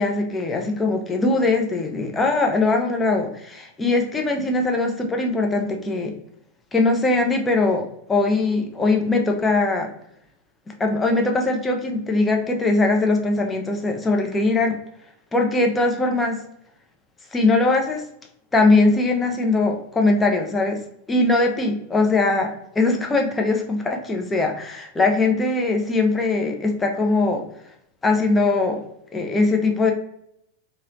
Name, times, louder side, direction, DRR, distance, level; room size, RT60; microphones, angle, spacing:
voice 1, 0.0-6.1 6.7-9.9 10.7-14.8 15.3-16.4 17.3-18.0 18.5-20.8 21.1-27.4 28.0-28.8 29.1-29.9, left 3 dB, 15° left, 2 dB, 0.6 m, -21 dB
3.0 x 2.8 x 2.6 m, 0.75 s
figure-of-eight pair, 90°, 0 cm